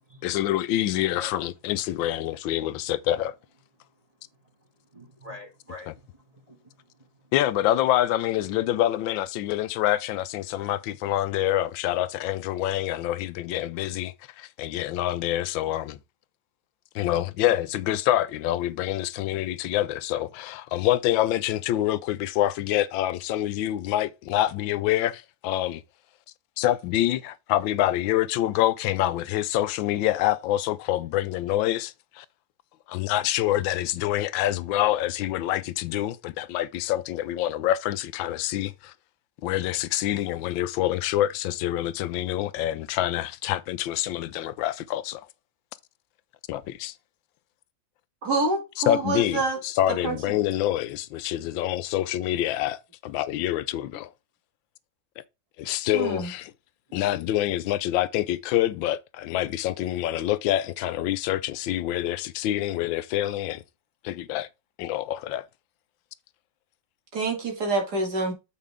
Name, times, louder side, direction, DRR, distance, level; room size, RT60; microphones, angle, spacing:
voice 1, 0.2-3.4 7.3-16.0 16.9-25.8 26.6-32.2 32.9-38.9 39.4-45.3 46.5-46.9 48.9-54.1 55.2-55.3 55.6-56.5 56.9-63.6 64.0-64.5 64.8-65.4, left 13 dB, 90° left, 1.4 m, -26 dB
voice 2, 4.9-7.3, left 2 dB, 20° right, 2.4 m, -46 dB
voice 3, 48.2-49.6 50.0-50.2 55.9-56.3 67.1-68.3, right 3 dB, 55° right, 2.9 m, -26 dB
7.5 x 5.7 x 3.6 m
omnidirectional pair, 2.0 m